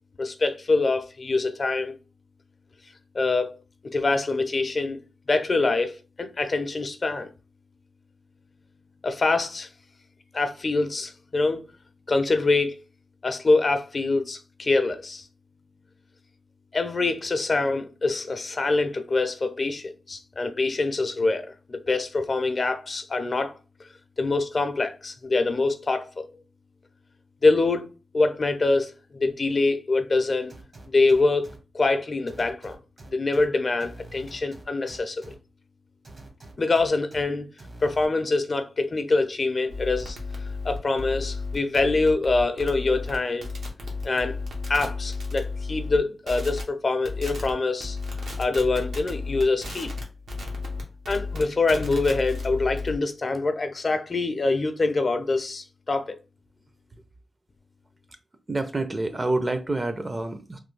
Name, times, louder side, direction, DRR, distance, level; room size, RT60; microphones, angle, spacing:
voice 1, 0.2-2.0 3.1-3.5 3.8-5.0 5.3-5.9 6.2-7.3 9.0-9.7 10.3-11.6 12.1-12.8 13.2-15.3 16.7-23.5 24.2-26.4 27.4-27.9 28.1-30.5 30.9-32.8 33.1-35.3 36.6-37.5 37.8-40.2 40.6-43.5 44.0-44.4 44.7-48.0 48.4-49.9 51.1-56.2, left 3 dB, 45° left, 0.5 m, -24 dB
sound 1, 30.5-31.6 32.3-33.5 33.8-35.3 36.0-37.2 37.6-38.1, right 2 dB, 50° right, 1.1 m, -45 dB
sound 2, 39.7-46.0 46.3-46.6 47.1-47.5 47.8-53.0, left 3 dB, 80° right, 0.9 m, -33 dB
voice 2, 58.5-60.6, right 2 dB, 30° right, 0.6 m, -27 dB
3.2 x 2.2 x 3.2 m
cardioid pair, 80°, 0 cm